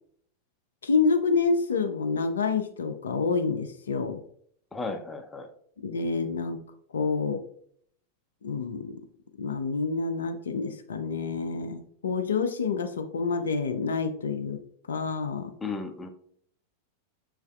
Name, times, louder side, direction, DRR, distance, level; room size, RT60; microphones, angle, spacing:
voice 1, 0.8-4.2 5.8-6.6 6.9-7.4 8.4-9.0 9.4-14.6 14.9-15.5, left 4 dB, 65° left, 7 dB, 0.4 m, -28 dB
voice 2, 4.7-5.5 15.6-16.1, left 3 dB, 10° left, 5 dB, 0.5 m, -34 dB
6.4 x 3.2 x 2.4 m, 0.64 s
figure-of-eight pair, 90°, 0 cm